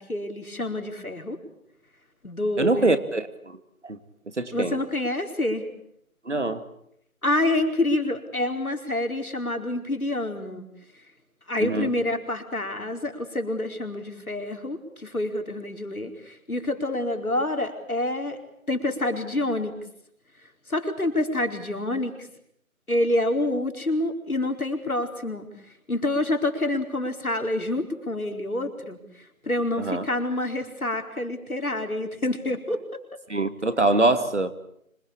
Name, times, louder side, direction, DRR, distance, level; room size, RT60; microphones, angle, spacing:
voice 1, 0.0-1.4 2.2-3.0 4.5-5.7 7.2-10.7 11.5-18.4 18.7-19.7 20.7-22.1 22.9-25.5 25.9-29.0 29.4-33.0, left 1 dB, 80° left, 5 dB, 4.6 m, -27 dB
voice 2, 2.6-3.6 3.8-4.0 4.4-4.8 6.3-6.6 11.6-11.9 29.8-30.0 33.3-34.5, right 2 dB, 55° right, 10 dB, 2.3 m, -24 dB
26.0 x 22.0 x 8.6 m, 0.74 s
figure-of-eight pair, 170°, 42 cm